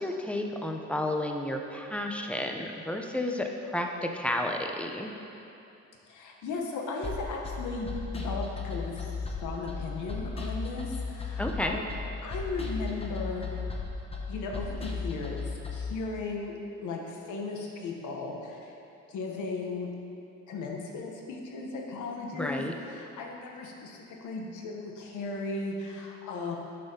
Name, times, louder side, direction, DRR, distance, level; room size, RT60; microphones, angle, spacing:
voice 1, 0.0-5.1 11.4-11.8 22.3-22.7, left 1 dB, 5° left, 3 dB, 0.6 m, -31 dB
voice 2, 6.1-11.9 12.2-13.6 14.3-15.4 15.7-16.6 16.8-18.7 19.1-19.9 20.5-26.6, left 3 dB, 80° left, 1 dB, 1.0 m, -36 dB
sound 1, 7.0-15.9, left 4 dB, 20° left, 0.9 m, -35 dB
9.1 x 5.5 x 2.8 m, 2.9 s
cardioid pair, 90°, 30 cm